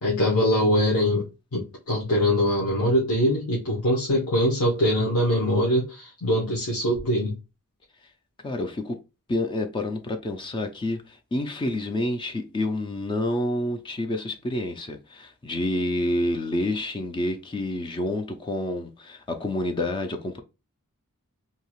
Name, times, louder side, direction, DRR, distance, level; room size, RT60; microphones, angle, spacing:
voice 1, 0.0-7.4, equal, 75° left, 0.9 m, -23 dB
voice 2, 8.4-9.0 9.3-20.4, left 1 dB, 20° left, 0.3 m, -28 dB
2.7 x 2.3 x 2.9 m
head